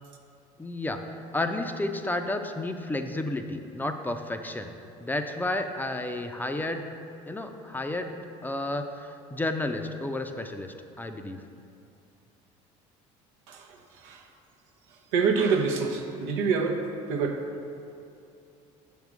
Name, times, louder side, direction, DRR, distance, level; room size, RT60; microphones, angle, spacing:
voice 1, 0.6-1.0 1.3-4.7 5.0-6.8 7.3-11.4, left 2 dB, 10° left, 6 dB, 0.4 m, -31 dB
voice 2, 15.1-17.4, right 5 dB, 85° right, 3 dB, 0.8 m, -26 dB
7.2 x 3.6 x 6.1 m, 2.6 s
supercardioid pair, 90°, 16 cm